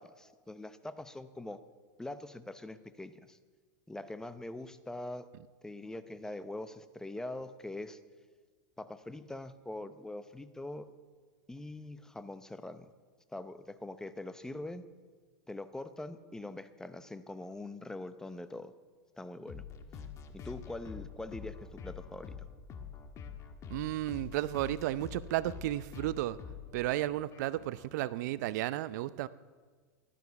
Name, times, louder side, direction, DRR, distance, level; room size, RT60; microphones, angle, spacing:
voice 1, 0.0-1.6 2.0-3.4 3.9-5.3 5.6-8.0 8.8-10.9 11.5-12.9 13.3-14.8 15.5-18.7 19.2-19.6 20.3-22.4, left 2 dB, 5° left, 12 dB, 0.7 m, -43 dB
sound 1, 19.5-27.9, left 6 dB, 30° left, 1.6 m, -46 dB
voice 2, 23.7-26.4 26.7-29.3, right 15 dB, 65° right, 17 dB, 0.6 m, -33 dB
15.5 x 12.0 x 7.0 m, 1.5 s
supercardioid pair, 135°, 10 cm